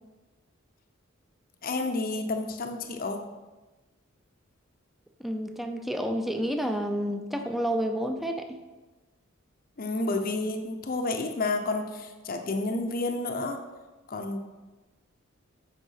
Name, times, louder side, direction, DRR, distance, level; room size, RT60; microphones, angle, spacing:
voice 1, 1.6-3.2 9.8-13.6 14.1-14.4, left 2 dB, 45° left, 5 dB, 0.7 m, -30 dB
voice 2, 5.2-8.6, equal, ahead, 5 dB, 0.6 m, -30 dB
8.2 x 5.2 x 5.7 m, 1.2 s
head